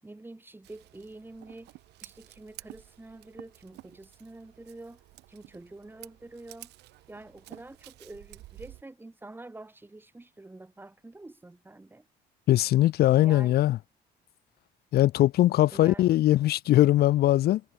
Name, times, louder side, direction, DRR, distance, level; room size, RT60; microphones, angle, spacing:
voice 1, 0.0-5.0 5.3-6.7 7.1-12.1 13.2-13.6 15.7-16.1, right 2 dB, 10° right, 7.4 m, -47 dB
Scissors, 0.6-8.8, right 17 dB, 85° right, 6.7 m, -51 dB
voice 2, 12.5-13.8 14.9-17.6, left 14 dB, 65° left, 1.3 m, -21 dB
cardioid pair, 110°, 17 cm